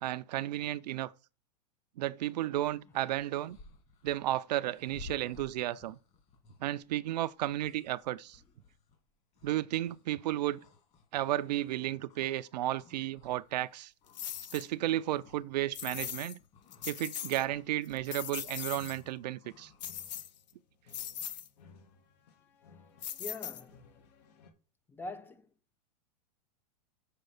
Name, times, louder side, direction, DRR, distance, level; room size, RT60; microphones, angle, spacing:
voice 1, 0.0-1.1 2.0-3.6 4.0-6.0 6.6-8.4 9.4-10.6 11.1-13.9 14.5-16.4 16.9-19.7, right 14 dB, 75° right, 0.5 m, -33 dB
sound 1, 2.5-12.5 12.8-20.1, left 4 dB, 30° left, 2.5 m, -57 dB
sound 2, 14.1-14.7 15.7-16.4 16.7-17.4 17.8-19.0 19.8-20.5 20.9-21.5 23.0-23.9, left 10 dB, 90° left, 0.8 m, -40 dB
sound 3, 18.7-24.5, left 5 dB, 65° left, 1.9 m, -60 dB
voice 2, 23.2-23.9 24.9-25.5, left 2 dB, 10° left, 0.4 m, -43 dB
6.7 x 5.0 x 6.5 m
supercardioid pair, 140°, 21 cm